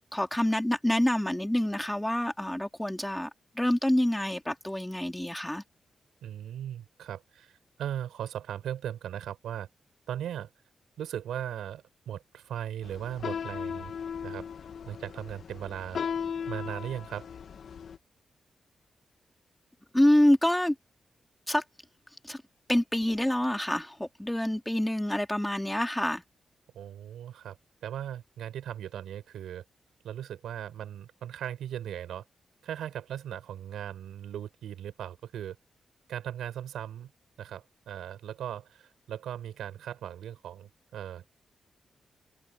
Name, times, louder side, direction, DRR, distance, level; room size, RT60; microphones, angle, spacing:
voice 1, 0.1-3.3 3.6-5.6 19.9-20.7 21.5-21.6 22.2-22.4 22.7-26.2, left 1 dB, 10° left, 2.8 m, -26 dB
voice 2, 6.2-9.7 10.1-10.5 11.0-13.9 14.2-14.5 14.9-16.0 16.5-17.3 26.7-29.6 30.0-32.2 32.6-35.6 36.1-37.1 37.4-41.3, right 10 dB, 85° right, 5.4 m, -38 dB
sound 1, 12.8-18.0, left 7 dB, 70° left, 1.5 m, -37 dB
supercardioid pair, 50°, 0 cm